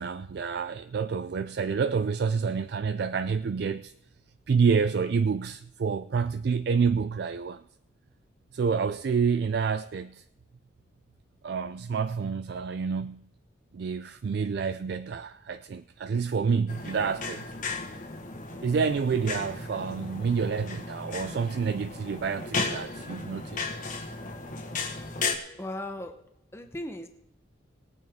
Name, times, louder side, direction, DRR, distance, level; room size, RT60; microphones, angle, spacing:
voice 1, 0.0-3.9 4.5-7.6 8.5-10.2 11.4-13.3 13.7-17.5 18.6-23.7, right 5 dB, 55° right, 0.3 m, -28 dB
sound 1, 16.7-25.4, left 3 dB, 40° left, 1.3 m, -35 dB
voice 2, 25.6-26.1 26.5-27.1, left 1 dB, 10° left, 0.9 m, -37 dB
20.0 x 9.0 x 3.6 m
head